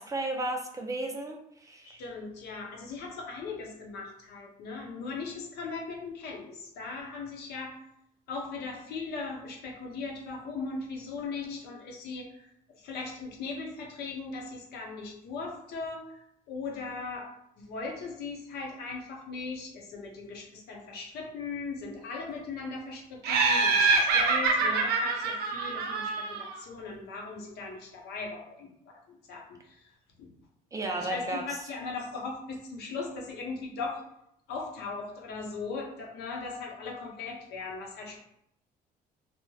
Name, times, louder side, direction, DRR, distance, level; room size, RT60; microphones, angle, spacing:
voice 1, 0.0-2.0 30.7-31.4, right 2 dB, 20° right, 1 dB, 0.4 m, -34 dB
voice 2, 1.8-7.7 8.3-12.5 12.8-17.3 17.6-29.9 30.2-30.3 30.8-34.1 34.5-38.2, left 4 dB, 75° left, 0 dB, 0.6 m, -39 dB
Laughter, 23.2-26.6, right 4 dB, 70° right, 0.5 m, -25 dB
3.0 x 2.0 x 2.2 m, 0.75 s
cardioid pair, 110°, 17 cm